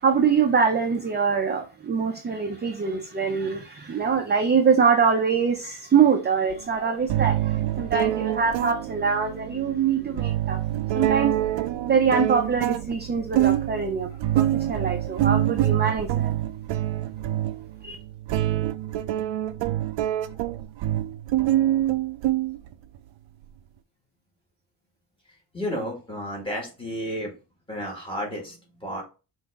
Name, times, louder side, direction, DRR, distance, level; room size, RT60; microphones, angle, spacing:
voice 1, 0.0-10.6 10.9-11.4 11.9-14.1 14.3-16.3 17.8-18.0, right 6 dB, 25° right, 0.5 m, -23 dB
sound 1, 6.5-6.6 7.1-23.0, right 13 dB, 75° right, 0.5 m, -26 dB
voice 2, 25.5-27.3 27.7-29.0, equal, 10° left, 1.7 m, -32 dB
5.6 x 2.6 x 3.5 m
wide cardioid pair, 165°, 45 cm